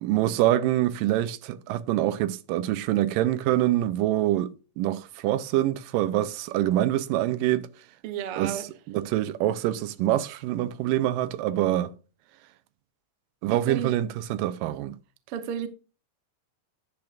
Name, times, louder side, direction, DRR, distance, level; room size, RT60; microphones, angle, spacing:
voice 1, 0.0-7.9 8.4-8.6 8.9-11.9 13.4-15.0, right 14 dB, 90° right, 2.3 m, -25 dB
voice 2, 8.0-8.7 13.5-13.9 15.3-15.7, right 8 dB, 65° right, 1.4 m, -32 dB
10.5 x 8.7 x 2.5 m
omnidirectional pair, 3.9 m